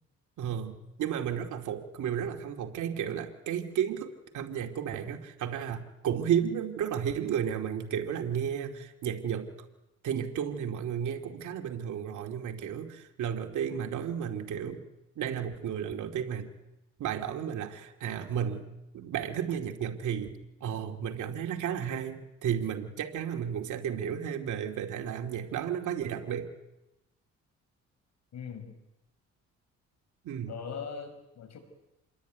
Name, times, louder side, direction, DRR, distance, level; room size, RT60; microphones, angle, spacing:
voice 1, 0.4-9.5 10.0-14.8 15.2-16.5 17.0-18.7 18.9-20.3 20.6-26.5 30.2-30.5, right 8 dB, 75° right, 4 dB, 2.5 m, -33 dB
voice 2, 28.3-28.8 30.5-31.6, left 6 dB, 60° left, 8 dB, 6.1 m, -40 dB
27.0 x 22.0 x 9.4 m, 0.95 s
cardioid pair, 90°, 30 cm